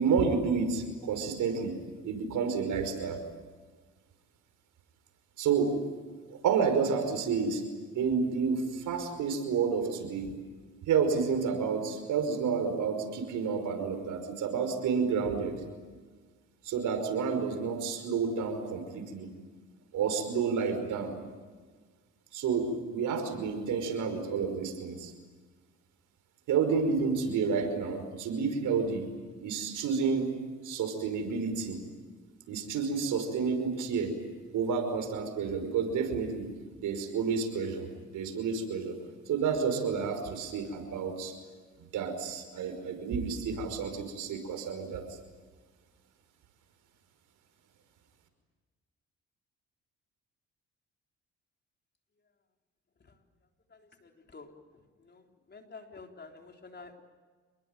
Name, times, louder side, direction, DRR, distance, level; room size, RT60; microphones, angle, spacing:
voice 1, 0.0-3.2 5.4-5.8 6.3-7.6 7.9-10.3 10.9-15.6 16.6-19.3 19.9-21.2 22.3-25.1 26.5-29.1 29.4-30.4 30.6-31.8 32.5-34.2 34.5-36.5 36.8-37.9 38.1-39.0 39.3-41.3 41.8-45.2, right 5 dB, 80° right, 7 dB, 5.3 m, -30 dB
voice 2, 55.5-57.0, left 4 dB, 35° left, 3 dB, 3.8 m, -48 dB
27.5 x 21.5 x 9.1 m, 1.5 s
cardioid pair, 90°, 30 cm